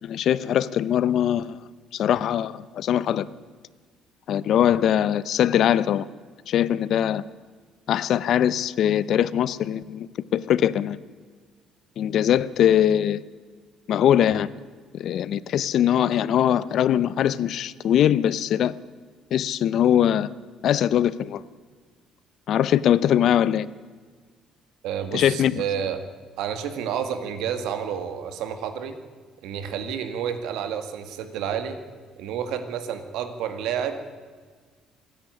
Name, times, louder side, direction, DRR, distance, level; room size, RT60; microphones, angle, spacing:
voice 1, 0.0-1.6 1.9-3.3 4.3-6.1 6.5-7.2 7.9-11.0 12.0-13.2 13.9-14.5 14.9-18.7 19.3-20.3 20.6-21.4 22.5-23.7 25.1-25.6, left 10 dB, 60° left, 18 dB, 0.7 m, -21 dB
voice 2, 24.8-26.0 26.4-29.0 29.4-31.8 32.2-34.2, right 8 dB, 80° right, 9 dB, 2.1 m, -30 dB
26.5 x 10.5 x 9.7 m, 1.5 s
cardioid pair, 125°, 0 cm